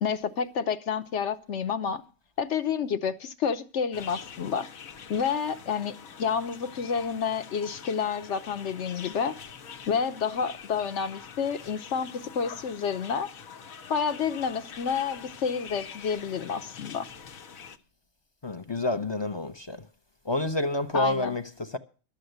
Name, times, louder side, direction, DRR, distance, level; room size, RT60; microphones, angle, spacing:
voice 1, 0.0-2.0 2.4-4.7 5.1-9.4 9.9-13.3 13.9-17.0 20.9-21.4, left 6 dB, 60° left, 1.1 m, -29 dB
sound 1, 3.9-17.8, left 7 dB, 85° left, 1.4 m, -45 dB
voice 2, 18.4-19.9 20.2-21.8, left 2 dB, 30° left, 0.5 m, -29 dB
13.0 x 7.0 x 7.9 m
omnidirectional pair, 1.4 m